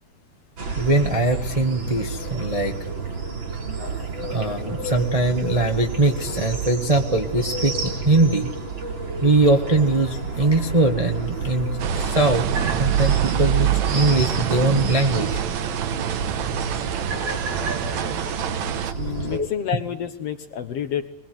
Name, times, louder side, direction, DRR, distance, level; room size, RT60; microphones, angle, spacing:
sound 1, 0.6-19.4, right 5 dB, 40° right, 3.6 m, -28 dB
voice 1, 0.7-2.7 4.3-8.5 9.2-11.7 12.0-12.5 12.8-15.4 19.3-19.4, right 2 dB, 25° right, 3 dB, 0.8 m, -21 dB
sound 2, 11.8-18.9, right 10 dB, 70° right, 2.2 m, -28 dB
voice 2, 19.0-21.1, left 9 dB, 60° left, 8 dB, 1.9 m, -29 dB
23.0 x 21.5 x 8.0 m, 0.87 s
omnidirectional pair, 3.6 m